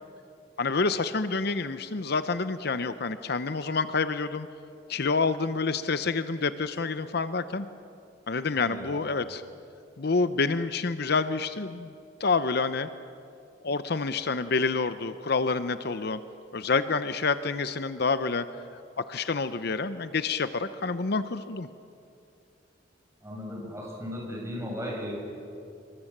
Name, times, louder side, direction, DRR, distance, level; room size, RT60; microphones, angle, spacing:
voice 1, 0.6-4.5 4.9-7.7 8.3-9.4 10.0-11.9 12.2-12.9 13.6-16.2 16.5-18.4 19.0-21.7, left 4 dB, 60° left, 11 dB, 0.8 m, -28 dB
voice 2, 8.6-9.0 23.2-25.1, equal, 15° right, -2 dB, 7.5 m, -36 dB
27.0 x 23.0 x 7.4 m, 2.5 s
head